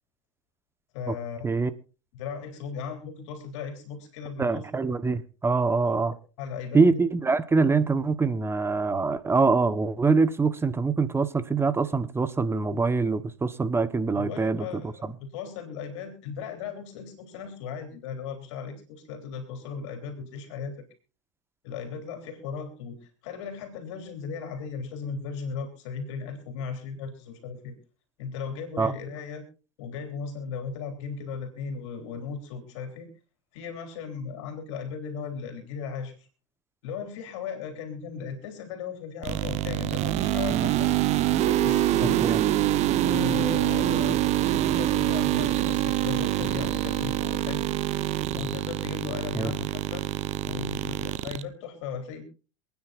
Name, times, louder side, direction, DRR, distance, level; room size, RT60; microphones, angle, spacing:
voice 1, 0.9-1.6 2.1-4.7 5.8-5.9 6.4-7.0 14.1-20.9 21.6-27.8 28.2-29.4 29.8-33.1 33.5-36.3 36.8-40.9 41.4-42.4 43.0-47.7 48.3-50.1 50.4-52.2, left 6 dB, 70° left, 3.5 m, -37 dB
voice 2, 4.4-6.1 6.7-15.1 28.8-28.9 42.0-42.4 49.3-49.5, right 4 dB, 15° right, 1.2 m, -24 dB
sound 1, 39.2-51.4, right 13 dB, 45° right, 1.1 m, -25 dB
27.5 x 9.7 x 2.6 m
hypercardioid pair, 100°, 16 cm